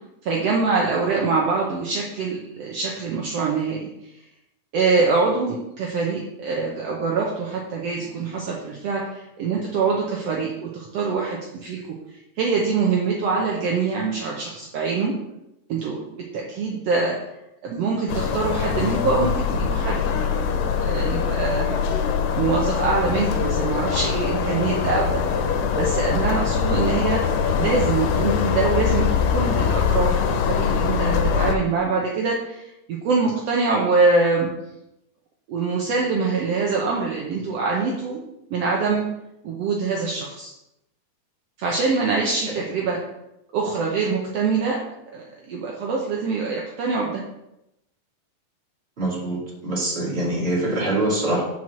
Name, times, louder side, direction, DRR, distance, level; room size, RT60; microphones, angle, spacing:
voice 1, 0.2-3.9 4.7-12.0 12.4-15.1 15.7-17.2 17.6-21.8 22.3-25.2 25.7-34.5 35.5-38.2 38.5-39.0 39.4-40.5 41.6-43.0 43.5-44.8 45.1-47.2, right 4 dB, 75° right, -2 dB, 1.4 m, -24 dB
sound 1, 18.1-31.6, left 7 dB, 85° left, 2.3 m, -23 dB
voice 2, 49.0-51.4, right 1 dB, 20° right, -5 dB, 2.0 m, -24 dB
5.7 x 4.7 x 6.0 m, 0.87 s
omnidirectional pair, 3.9 m